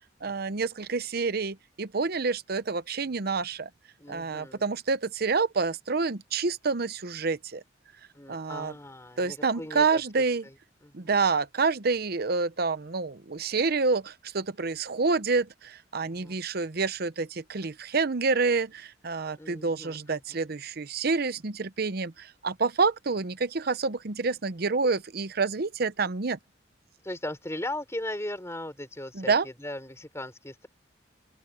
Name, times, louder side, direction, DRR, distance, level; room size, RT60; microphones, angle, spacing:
voice 1, 0.2-3.7 4.1-7.6 8.3-8.7 9.2-10.4 10.9-26.4 29.1-29.5, right 4 dB, 55° right, 0.8 m, -28 dB
voice 2, 4.0-4.7 8.1-10.0 10.4-10.5 10.8-11.1 16.0-16.4 19.4-20.4 27.0-30.7, left 1 dB, 15° left, 5.1 m, -38 dB
open air
head